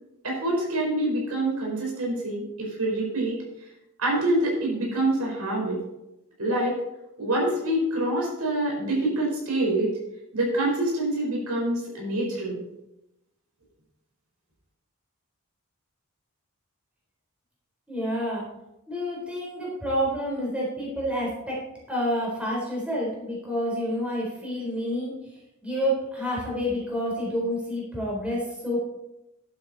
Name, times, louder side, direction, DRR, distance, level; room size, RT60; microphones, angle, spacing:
voice 1, 0.2-3.4 4.0-5.8 6.4-6.8 7.2-9.9 10.3-12.6, right 1 dB, 90° right, -2 dB, 4.7 m, -26 dB
voice 2, 17.9-18.4 18.9-21.6 21.9-25.1 25.6-28.8, equal, 5° right, -5 dB, 4.1 m, -28 dB
11.0 x 8.9 x 4.2 m, 0.89 s
head